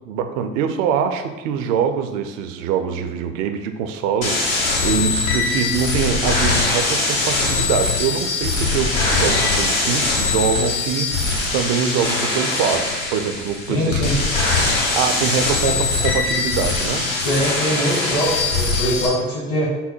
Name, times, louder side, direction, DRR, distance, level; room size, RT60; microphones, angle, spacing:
voice 1, 0.1-14.3 14.9-17.1, right 7 dB, 65° right, 7 dB, 0.5 m, -24 dB
sound 1, 4.2-19.1, left 3 dB, 75° left, 1.0 m, -21 dB
voice 2, 13.7-14.1 15.7-15.8 17.2-19.7, equal, 55° left, -6 dB, 1.5 m, -22 dB
3.8 x 2.1 x 4.3 m, 1.1 s
hypercardioid pair, 65°, 41 cm